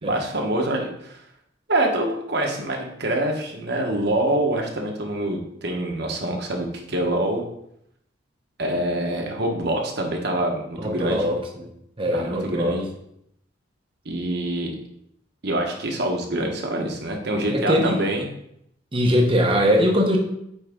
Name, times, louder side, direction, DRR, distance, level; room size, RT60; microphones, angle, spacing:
voice 1, 0.0-1.2 1.7-7.4 8.6-11.3 12.1-12.9 14.0-14.7 15.4-18.2, right 1 dB, 55° right, 1 dB, 1.2 m, -25 dB
voice 2, 10.8-11.7 12.0-12.7 17.5-18.0 18.9-20.2, equal, 25° right, 1 dB, 0.9 m, -21 dB
9.0 x 3.7 x 3.6 m, 0.74 s
head